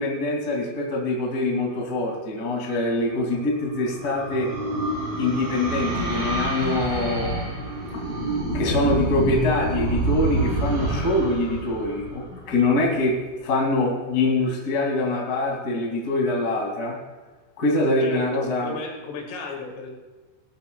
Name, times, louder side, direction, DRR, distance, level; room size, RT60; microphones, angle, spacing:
voice 1, 0.0-4.5 5.2-7.5 7.9-8.2 8.5-16.9 17.6-18.7, left 2 dB, 35° left, -1 dB, 1.6 m, -24 dB
sound 1, 3.2-12.8, right 1 dB, 50° right, 5.7 m, -27 dB
voice 2, 18.0-19.9, left 3 dB, 75° left, 1 dB, 4.4 m, -34 dB
19.0 x 13.0 x 2.3 m, 1.2 s
omnidirectional pair, 5.9 m